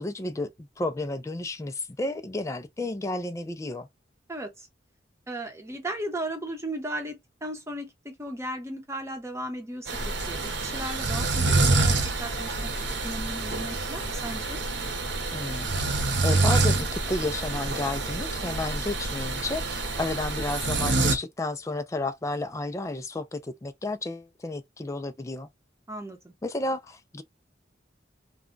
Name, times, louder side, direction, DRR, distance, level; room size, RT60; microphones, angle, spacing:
voice 1, 0.0-3.9 15.3-15.9 16.2-25.5 26.4-27.2, left 2 dB, 15° left, 0.3 m, -32 dB
voice 2, 4.3-4.7 5.3-9.9 10.3-12.7 13.0-14.6 25.9-26.3, right 1 dB, 15° right, 0.8 m, -36 dB
sound 1, 9.9-21.2, right 3 dB, 90° right, 0.8 m, -27 dB
2.3 x 2.2 x 3.7 m
head